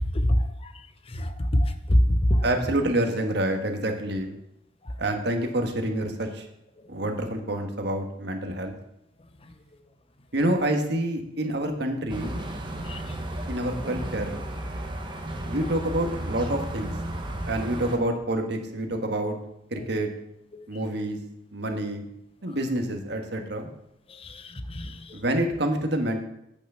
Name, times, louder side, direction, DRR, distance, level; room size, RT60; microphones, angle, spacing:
voice 1, 0.4-0.7 1.1-2.4 12.9-13.1 20.5-20.6 24.2-25.1, equal, 30° left, 9 dB, 0.8 m, -25 dB
voice 2, 2.4-4.4 5.0-6.5 6.9-8.8 10.3-12.4 13.5-14.4 15.5-16.9 17.5-19.4 19.7-20.1 20.7-21.2 21.5-22.0 22.4-23.7 25.1-26.2, right 1 dB, 60° right, 4 dB, 1.5 m, -27 dB
sound 1, 12.1-18.0, right 1 dB, 25° right, 1.3 m, -33 dB
8.7 x 6.1 x 6.9 m, 0.82 s
head